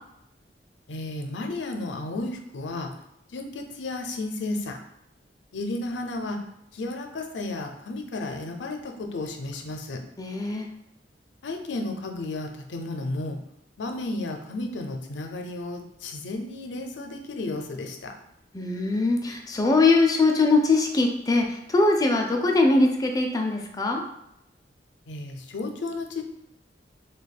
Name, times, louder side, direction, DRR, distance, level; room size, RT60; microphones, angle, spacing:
voice 1, 0.9-2.9 3.3-4.8 5.5-6.4 6.7-10.0 11.4-13.4 13.8-18.1 25.1-26.2, left 2 dB, 90° left, 4 dB, 0.5 m, -33 dB
voice 2, 10.2-10.7 18.5-24.0, left 3 dB, 20° left, 2 dB, 0.4 m, -22 dB
2.8 x 2.2 x 4.0 m, 0.79 s
head